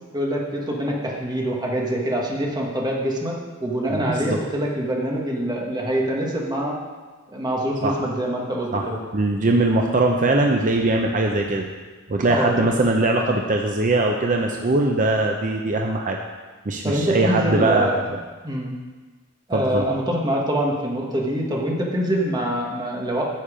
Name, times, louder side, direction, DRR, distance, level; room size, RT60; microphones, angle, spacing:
voice 1, 0.1-6.8 7.3-9.0 12.3-12.7 16.8-18.0 18.4-18.8 19.5-23.2, right 1 dB, 20° right, -2 dB, 1.5 m, -25 dB
voice 2, 3.9-4.4 7.8-8.0 8.7-11.7 12.1-16.2 16.7-18.2 19.5-19.8, right 2 dB, 35° right, 2 dB, 0.6 m, -21 dB
10.0 x 7.3 x 5.0 m, 1.3 s
head